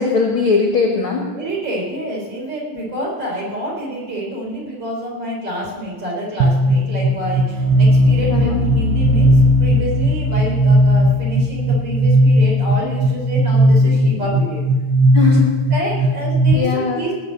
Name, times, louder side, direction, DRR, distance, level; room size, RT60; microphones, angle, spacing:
voice 1, 0.0-1.3 8.3-8.6 15.1-15.5 16.5-17.0, left 4 dB, 50° left, 2 dB, 1.6 m, -19 dB
voice 2, 1.3-14.6 15.7-17.2, right 1 dB, 40° right, -3 dB, 5.0 m, -27 dB
sound 1, 6.4-16.5, equal, 85° right, 2.8 m, -16 dB
18.5 x 6.7 x 7.7 m, 1.3 s
omnidirectional pair, 4.1 m